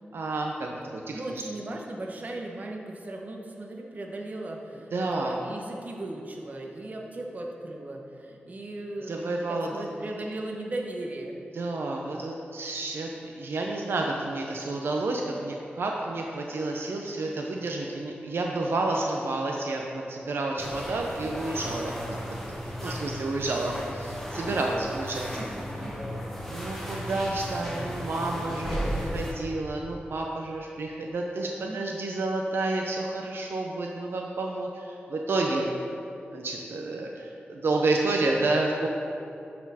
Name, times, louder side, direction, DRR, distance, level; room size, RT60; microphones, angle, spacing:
voice 1, 0.1-1.4 4.9-5.4 9.1-9.9 11.5-21.9 22.8-25.3 26.5-35.7 36.3-38.9, right 2 dB, 75° right, 0 dB, 0.6 m, -30 dB
voice 2, 1.1-11.3 22.8-23.3 25.3-26.1 31.6-32.0, right 2 dB, 45° right, 0 dB, 1.0 m, -37 dB
sound 1, 20.6-29.3, equal, 5° left, 1.2 m, -35 dB
12.0 x 4.4 x 4.1 m, 2.6 s
wide cardioid pair, 110°, 4 cm